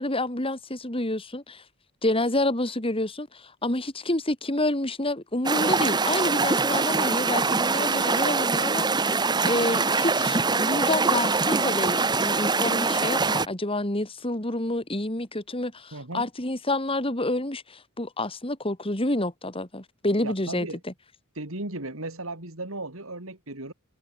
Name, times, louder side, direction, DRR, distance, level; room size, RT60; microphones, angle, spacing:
voice 1, 0.0-1.6 2.0-20.9, left 1 dB, 25° left, 3.3 m, -28 dB
sound 1, 5.4-13.5, right 4 dB, 20° right, 0.9 m, -24 dB
voice 2, 15.9-16.3 20.2-20.8 21.4-23.7, right 2 dB, 60° right, 3.6 m, -36 dB
head